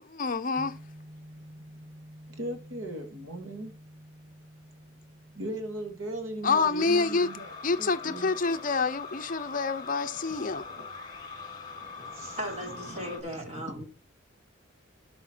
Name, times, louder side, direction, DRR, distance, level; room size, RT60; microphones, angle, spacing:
voice 1, 0.1-0.8 6.4-7.3 7.6-10.6, left 4 dB, 40° left, 0.6 m, -27 dB
sound 1, 0.6-12.6, equal, 10° right, 2.9 m, -52 dB
voice 2, 1.4-1.9 2.3-3.7 5.4-7.5 7.8-8.3 10.7-10.9 11.5-12.4 12.6-13.8, right 1 dB, 85° right, 2.0 m, -39 dB
sound 2, 6.8-13.2, left 4 dB, 20° left, 3.7 m, -42 dB
voice 3, 12.3-13.9, equal, 35° right, 3.6 m, -37 dB
12.5 x 5.7 x 4.4 m
head